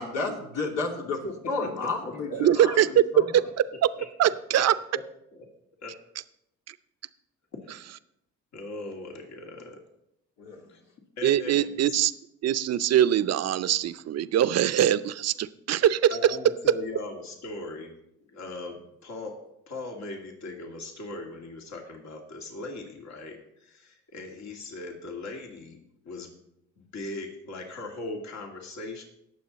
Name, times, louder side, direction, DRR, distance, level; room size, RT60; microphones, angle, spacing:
voice 1, 0.0-1.2 1.5-3.3 10.4-10.6, left 3 dB, 90° left, 0 dB, 2.9 m, -32 dB
voice 2, 1.2-2.4 3.2-3.3 5.3-5.4 5.8-5.9 7.6-7.9 8.5-9.8 10.7-10.8 11.2-12.0 16.1-17.9 18.3-19.4 19.7-25.8 26.0-26.4 26.8-29.0, left 2 dB, 65° left, 1 dB, 2.5 m, -39 dB
voice 3, 2.3-3.4 3.8-3.9 4.2-4.8 6.7-6.8 11.2-12.1 12.4-16.4, right 11 dB, 55° right, 14 dB, 0.6 m, -22 dB
18.5 x 7.2 x 4.2 m, 0.79 s
cardioid pair, 90°, 30 cm